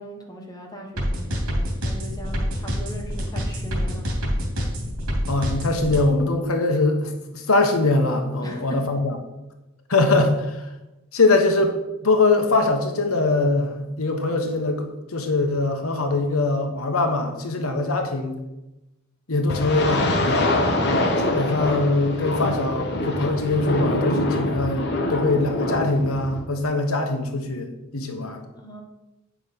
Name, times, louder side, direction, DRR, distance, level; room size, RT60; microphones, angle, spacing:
voice 1, 0.0-4.2 8.4-8.8 28.4-28.8, equal, 20° left, 1 dB, 1.4 m, -39 dB
sound 1, 1.0-6.0, equal, 80° right, 2.8 m, -27 dB
voice 2, 5.3-9.2 9.9-10.7 11.1-11.8 12.0-18.4 19.3-20.5 21.2-28.4, left 2 dB, 85° left, 5 dB, 1.2 m, -22 dB
sound 2, 19.5-26.4, left 1 dB, 55° left, 1.3 m, -24 dB
9.0 x 6.0 x 5.3 m, 0.98 s
head